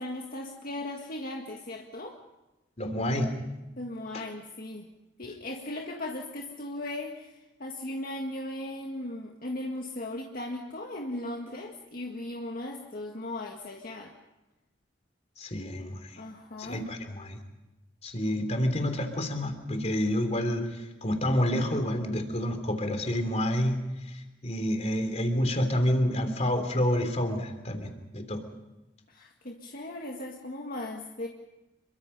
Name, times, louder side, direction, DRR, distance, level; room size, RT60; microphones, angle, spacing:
voice 1, 0.0-2.2 3.8-4.9 5.2-14.1 16.2-16.8 29.1-31.3, left 1 dB, 55° left, 1 dB, 1.9 m, -37 dB
voice 2, 2.8-3.3 15.4-16.2 16.6-17.4 18.0-23.8 24.0-28.4, equal, 40° left, 7 dB, 3.2 m, -28 dB
27.5 x 23.5 x 5.5 m, 1.0 s
head